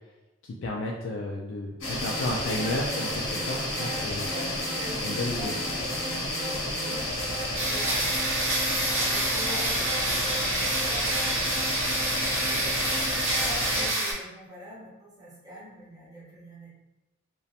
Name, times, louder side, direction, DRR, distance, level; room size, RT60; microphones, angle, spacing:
voice 1, 0.4-4.3 5.0-5.5, left 2 dB, 60° left, -2 dB, 0.3 m, -32 dB
sound 1, 1.8-13.9, left 1 dB, 90° left, 0.8 m, -31 dB
voice 2, 3.6-3.9 4.3-16.7, equal, 20° right, -8 dB, 0.8 m, -44 dB
sound 2, 7.6-14.1, right 1 dB, 65° right, 0.7 m, -28 dB
2.4 x 2.1 x 2.7 m, 1.0 s
head